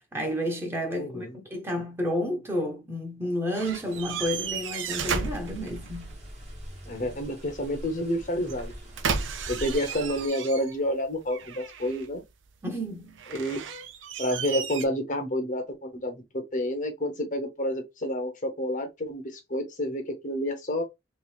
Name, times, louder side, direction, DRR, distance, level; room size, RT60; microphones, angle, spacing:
voice 1, 0.0-6.1 12.6-13.2, equal, 15° right, 0.9 m, -31 dB
voice 2, 0.9-1.3 6.9-8.7 9.5-12.2 13.3-13.6 14.2-20.8, equal, 40° left, 0.8 m, -29 dB
sound 1, 3.5-6.2 8.4-10.9 11.3-12.2 13.2-14.9, right 6 dB, 85° right, 0.6 m, -34 dB
sound 2, 3.6-10.3, equal, 35° right, 1.2 m, -44 dB
3.1 x 3.1 x 3.4 m
head